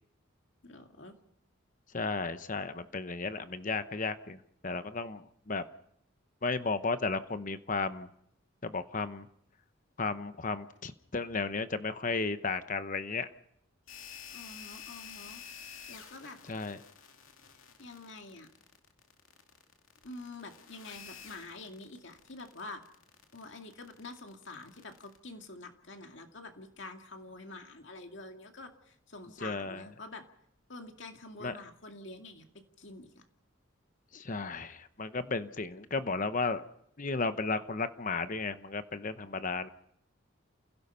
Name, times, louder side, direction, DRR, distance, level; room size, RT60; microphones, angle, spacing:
voice 1, 0.6-1.2 14.3-15.4 15.9-16.4 17.8-18.5 20.0-22.8 23.3-30.3 30.7-32.5 32.8-33.2, left 2 dB, 60° left, 4 dB, 2.3 m, -47 dB
voice 2, 1.9-5.6 6.4-8.1 8.6-9.3 10.0-13.3 16.5-16.8 29.4-29.8 31.4-31.5 34.1-36.6 37.0-39.7, left 3 dB, 40° left, 11 dB, 0.9 m, -34 dB
sound 1, 13.9-25.2, left 7 dB, 85° left, 2.6 m, -50 dB
29.0 x 16.5 x 5.6 m, 0.71 s
head